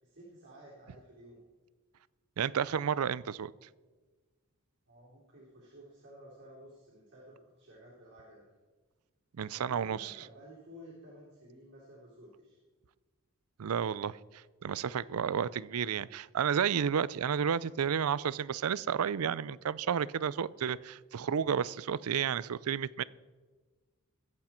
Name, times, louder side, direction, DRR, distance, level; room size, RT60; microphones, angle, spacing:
voice 1, 0.0-1.4 4.9-8.5 9.5-12.6, equal, 50° right, -7 dB, 3.8 m, -53 dB
voice 2, 2.4-3.5 9.3-10.1 13.6-23.0, right 7 dB, 85° right, 19 dB, 0.4 m, -31 dB
22.0 x 8.4 x 4.4 m, 1.3 s
head